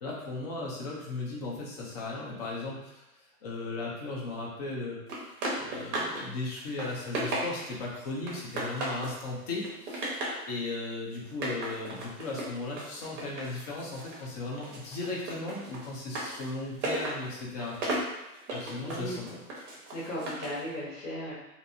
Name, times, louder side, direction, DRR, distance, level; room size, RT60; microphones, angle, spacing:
voice 1, 0.0-3.0 3.4-5.0 5.6-10.2 10.5-17.9 18.5-19.2, left 2 dB, 25° left, -3 dB, 0.4 m, -36 dB
sound 1, 5.1-6.2 6.6-7.8 8.3-9.2 9.6-10.4 11.3-14.3 14.6-20.6, right 1 dB, 50° right, 0.9 m, -36 dB
voice 2, 18.8-19.2 19.6-21.3, equal, 60° left, -9 dB, 1.1 m, -37 dB
2.5 x 2.4 x 2.7 m, 0.94 s
hypercardioid pair, 145°, 46 cm